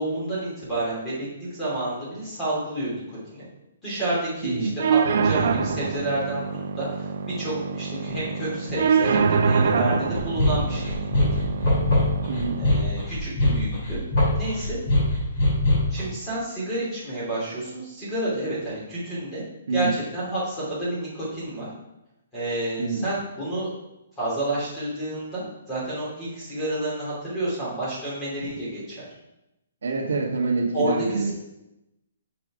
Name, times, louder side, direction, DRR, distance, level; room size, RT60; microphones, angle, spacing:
voice 1, 0.0-3.4 3.8-6.4 6.7-11.1 11.4-11.5 12.6-14.0 14.4-14.8 15.9-19.4 19.7-21.7 22.3-23.7 24.2-29.1 30.7-31.3, right 1 dB, 10° left, -8 dB, 2.7 m, -30 dB
voice 2, 4.4-4.7 12.3-12.6 19.7-19.9 22.8-23.1 29.8-31.3, right 4 dB, 80° right, 0 dB, 1.5 m, -26 dB
sound 1, 4.8-12.8, right 5 dB, 45° right, 0.5 m, -25 dB
sound 2, 10.1-16.0, left 1 dB, 30° left, 2.5 m, -22 dB
6.3 x 5.9 x 4.9 m, 0.90 s
hypercardioid pair, 180°, 0 cm